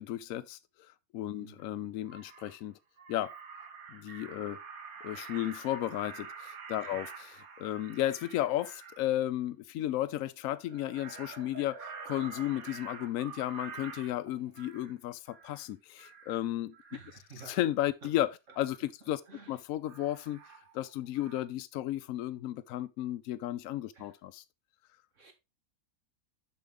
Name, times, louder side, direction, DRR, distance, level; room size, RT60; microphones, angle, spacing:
voice 1, 0.0-2.8 3.1-3.3 3.9-4.6 5.0-16.7 17.5-19.2 19.5-20.4 20.7-24.4, left 13 dB, 75° left, 0.9 m, -34 dB
Crow, 1.6-1.7 2.1-2.6 3.0-9.0 10.6-14.9 15.3-15.6 16.0-16.4 16.7-17.7 18.5-18.8 19.8-20.9 21.1-21.4, right 5 dB, 80° right, 1.6 m, -47 dB
voice 2, 16.9-17.6 18.0-18.1 19.3-19.6 23.9-24.1 25.1-25.3, right 4 dB, 60° right, 2.0 m, -51 dB
6.9 x 6.2 x 3.7 m
omnidirectional pair, 1.5 m